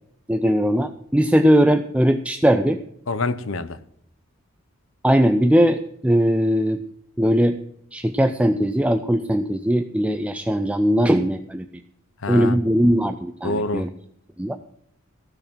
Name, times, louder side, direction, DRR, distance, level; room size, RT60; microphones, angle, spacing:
voice 1, 0.3-2.8 5.0-6.8 7.2-7.6 7.9-11.7 12.3-13.9 14.4-14.6, equal, 5° right, 0.4 m, -19 dB
voice 2, 3.1-3.8 12.2-12.6 13.4-13.8, left 2 dB, 65° left, 0.8 m, -26 dB
15.0 x 7.2 x 6.1 m
head